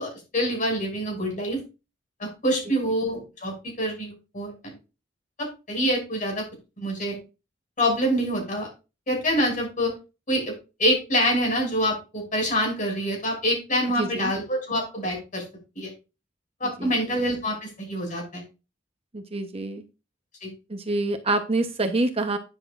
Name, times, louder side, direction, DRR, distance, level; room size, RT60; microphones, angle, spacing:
voice 1, 0.0-1.6 2.2-4.7 5.4-6.4 6.8-7.2 7.8-8.7 9.1-9.9 10.3-10.5 10.8-15.4 15.8-15.9 16.6-18.4 20.4-20.5, equal, 45° left, 1 dB, 6.1 m, -26 dB
voice 2, 14.0-14.3 16.8-17.1 19.1-19.8 20.7-22.4, right 2 dB, 30° right, 6 dB, 0.9 m, -27 dB
11.0 x 10.0 x 2.5 m, 0.29 s
head